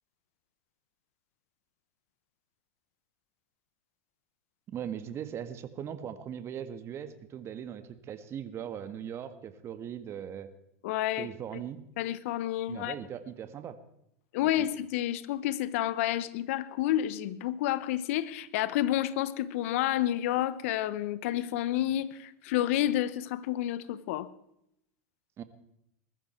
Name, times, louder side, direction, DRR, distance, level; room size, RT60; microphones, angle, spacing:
voice 1, 4.7-10.5 11.2-11.8 12.7-13.8 14.4-14.6 25.4-25.5, right 9 dB, 35° right, 1.8 m, -39 dB
voice 2, 10.8-11.3 12.0-12.9 14.3-24.3, left 13 dB, 65° left, 1.0 m, -30 dB
20.5 x 14.0 x 4.5 m
hypercardioid pair, 100°, 8 cm